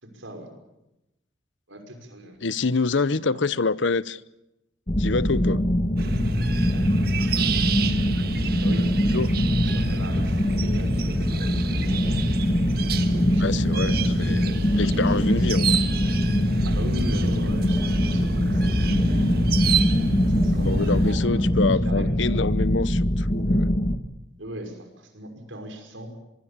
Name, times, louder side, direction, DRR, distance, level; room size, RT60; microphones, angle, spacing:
voice 1, 0.0-0.5 1.7-2.6 2.9-3.6 7.2-7.6 8.6-8.9 9.6-12.2 13.1-15.4 16.6-19.7 20.3-21.5 21.8-22.1 22.3-22.5 24.4-26.1, equal, 85° right, 5.7 m, -39 dB
voice 2, 2.4-4.2 5.0-5.6 9.1-9.4 13.4-14.4 14.8-15.7 20.5-23.7, left 4 dB, 75° left, 0.8 m, -26 dB
sound 1, 4.9-24.0, equal, 30° left, 1.5 m, -23 dB
sound 2, 6.0-21.2, right 3 dB, 50° right, 1.7 m, -29 dB
24.5 x 23.0 x 7.4 m
head